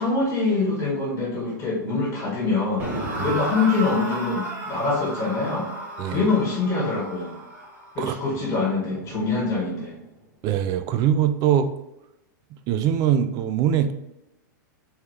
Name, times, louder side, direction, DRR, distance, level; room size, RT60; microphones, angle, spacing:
voice 1, 0.0-2.9 3.1-5.7 6.1-7.3 7.9-9.9, left 3 dB, 30° left, -4 dB, 1.6 m, -24 dB
sound 1, 2.8-9.9, right 1 dB, 15° right, 1.6 m, -34 dB
voice 2, 10.4-11.7 12.7-13.9, right 9 dB, 40° right, 11 dB, 0.4 m, -22 dB
4.3 x 3.5 x 3.3 m, 0.93 s
hypercardioid pair, 120°, 11 cm